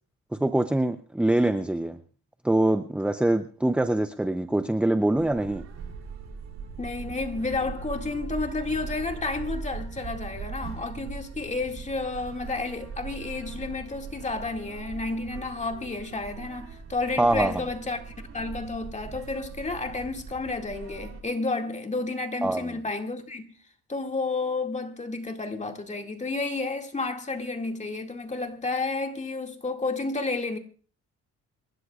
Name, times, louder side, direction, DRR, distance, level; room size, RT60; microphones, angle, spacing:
voice 1, 0.3-2.0 2.4-5.7 17.2-17.5 22.4-22.7, right 1 dB, 5° right, 0.6 m, -24 dB
sound 1, 5.1-21.2, right 5 dB, 60° right, 3.3 m, -40 dB
voice 2, 6.8-23.5 23.9-30.6, left 3 dB, 25° left, 2.2 m, -31 dB
27.0 x 13.0 x 2.4 m
cardioid pair, 90°, 30 cm